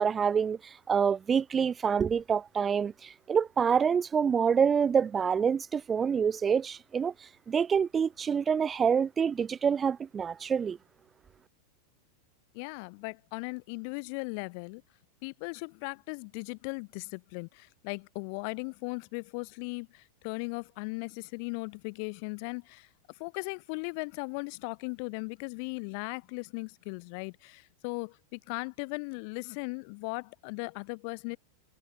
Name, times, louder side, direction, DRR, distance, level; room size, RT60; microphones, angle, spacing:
voice 1, 0.0-7.1 7.5-10.8, right 7 dB, 20° right, 0.3 m, -27 dB
voice 2, 12.5-14.8 15.2-22.9 23.2-31.4, left 36 dB, 45° left, 0.7 m, -38 dB
figure-of-eight pair, 90°, 0 cm